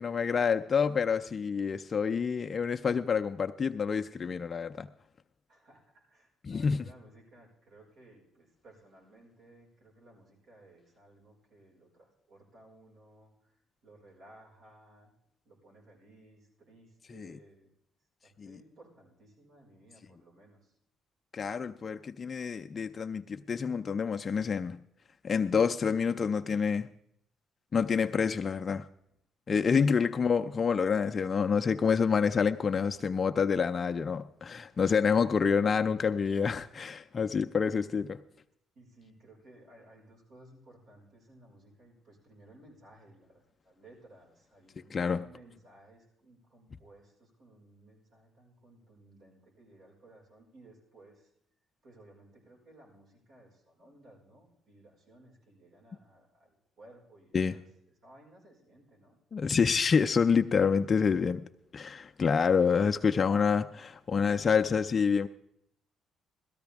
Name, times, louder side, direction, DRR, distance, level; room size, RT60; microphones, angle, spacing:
voice 1, 0.0-4.9 6.4-6.8 17.1-17.4 18.4-18.5 21.3-24.8 25.2-26.9 27.7-28.8 29.5-38.2 44.9-45.2 57.3-57.6 59.3-61.4 61.7-65.3, left 6 dB, 40° left, 0.5 m, -27 dB
voice 2, 5.5-15.1 15.4-17.7 18.2-20.7 38.7-51.3 51.8-57.6 58.0-59.2, right 1 dB, 70° right, 5.1 m, -58 dB
17.0 x 14.0 x 3.5 m
supercardioid pair, 70°, 0 cm